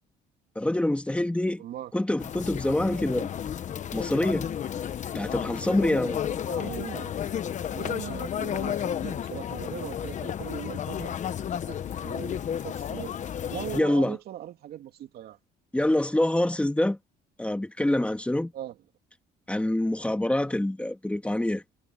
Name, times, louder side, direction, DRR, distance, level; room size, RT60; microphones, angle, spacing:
voice 1, 0.6-1.6 1.9-3.3 3.9-4.5 5.1-6.2 13.7-14.2 15.7-17.0 17.4-18.5 19.5-21.6, left 1 dB, 5° left, 2.5 m, -26 dB
voice 2, 1.6-1.9 6.5-7.2 7.7-11.2 11.7-13.1 13.5-15.4 18.5-18.8, right 12 dB, 65° right, 2.5 m, -39 dB
sound 1, 2.2-13.8, left 9 dB, 45° left, 1.1 m, -32 dB
cardioid pair, 110°, 17 cm